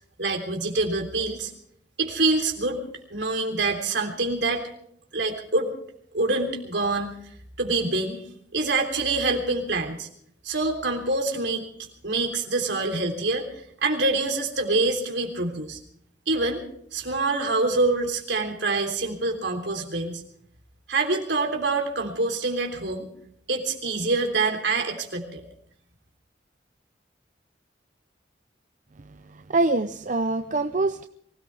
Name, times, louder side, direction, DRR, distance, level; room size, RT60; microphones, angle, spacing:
voice 1, 0.2-1.5 2.0-2.8 3.1-4.7 5.1-5.7 6.1-7.1 7.6-8.3 8.5-10.1 10.4-11.6 12.0-13.5 13.8-15.8 16.3-16.6 16.9-20.2 20.9-23.1 23.5-25.4, right 3 dB, 75° right, 2 dB, 3.4 m, -25 dB
voice 2, 29.5-31.1, right 2 dB, 40° right, 9 dB, 0.5 m, -24 dB
24.0 x 17.5 x 3.4 m, 0.66 s
head